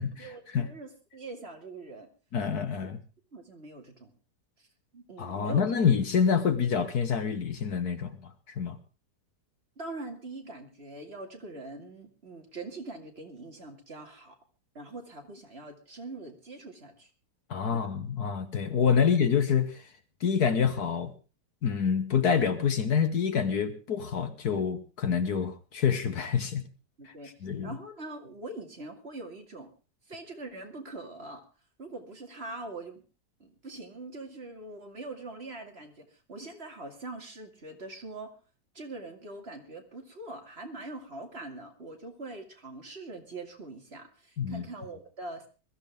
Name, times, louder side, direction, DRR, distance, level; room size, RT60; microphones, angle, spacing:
voice 1, 0.2-2.1 2.8-2.9 3.3-4.1 4.6-4.7 4.9-5.7 9.8-14.4 14.7-17.1 17.7-17.8 19.0-19.1 27.0-27.3 27.6-29.7 30.1-31.4 31.8-33.0 33.4-38.3 38.7-45.5, right 2 dB, 35° right, 3 dB, 2.6 m, -43 dB
voice 2, 2.3-3.0 5.2-8.8 17.5-19.9 20.2-21.1 21.6-26.7 27.1-27.2 27.4-27.8 44.4-44.7, left 7 dB, 65° left, 10 dB, 1.7 m, -27 dB
21.0 x 14.5 x 3.5 m, 0.33 s
omnidirectional pair, 1.9 m